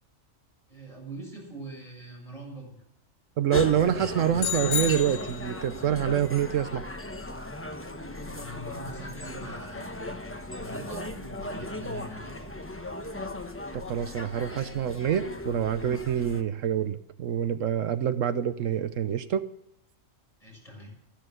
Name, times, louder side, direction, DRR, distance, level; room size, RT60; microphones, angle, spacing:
voice 1, 0.7-2.8 8.1-10.1 10.5-12.5 20.4-20.9, right 1 dB, 25° left, -2 dB, 7.2 m, -43 dB
voice 2, 3.4-6.8 13.7-19.4, right 9 dB, 75° right, 12 dB, 1.1 m, -26 dB
sound 1, 3.5-16.4, left 1 dB, 10° left, 0.9 m, -37 dB
sound 2, 4.4-5.7, left 9 dB, 55° left, 3.0 m, -31 dB
14.5 x 11.5 x 6.6 m, 0.82 s
omnidirectional pair, 1.3 m